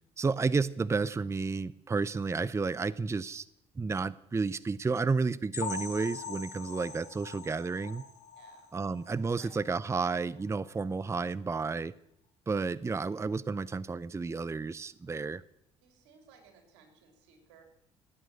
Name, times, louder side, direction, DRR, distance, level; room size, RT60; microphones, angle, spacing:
voice 1, 0.2-3.5 3.8-8.0 8.7-11.9 12.5-15.4, right 4 dB, 20° right, 19 dB, 0.6 m, -31 dB
sound 1, 5.5-9.2 9.5-9.7 10.1-10.2 10.6-10.7, left 5 dB, 60° left, 3.7 m, -42 dB
voice 2, 8.4-8.9 9.4-9.5 15.8-17.6, right 6 dB, 85° right, 4 dB, 3.5 m, -59 dB
16.5 x 9.2 x 9.0 m, 0.76 s
hypercardioid pair, 65°, 14 cm